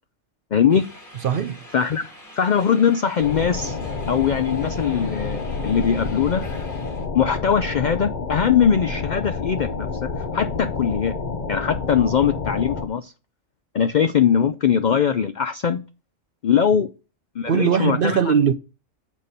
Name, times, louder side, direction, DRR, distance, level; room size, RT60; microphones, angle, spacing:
voice 1, 0.5-0.8 1.7-2.1 2.4-3.8 4.1-6.4 7.1-11.1 11.5-13.1 13.7-15.8 16.4-16.9 17.4-18.2, left 7 dB, 80° left, 0.4 m, -21 dB
sound 1, 0.7-7.1, left 1 dB, 15° left, 1.6 m, -45 dB
voice 2, 1.2-1.6 17.5-18.5, right 7 dB, 60° right, 0.6 m, -20 dB
sound 2, 3.2-12.9, left 4 dB, 40° left, 0.7 m, -29 dB
7.3 x 4.2 x 6.5 m
omnidirectional pair, 1.4 m